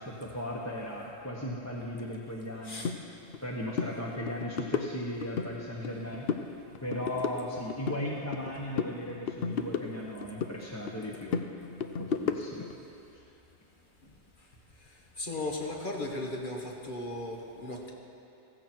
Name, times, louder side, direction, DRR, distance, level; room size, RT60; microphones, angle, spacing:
voice 1, 0.0-2.9 3.4-6.3 6.8-11.4 12.0-12.7 13.1-13.2, left 1 dB, 15° left, -4 dB, 1.1 m, -37 dB
voice 2, 2.6-2.9 15.2-17.9, left 2 dB, 50° left, 0 dB, 1.8 m, -36 dB
sound 1, 2.8-3.0 3.3-3.5 3.7-3.9 4.3-5.5 5.8-6.5 6.8-8.5 8.8-10.6 10.9-12.7, left 6 dB, 65° left, 0.9 m, -33 dB
15.5 x 15.0 x 4.5 m, 2.7 s
omnidirectional pair, 1.1 m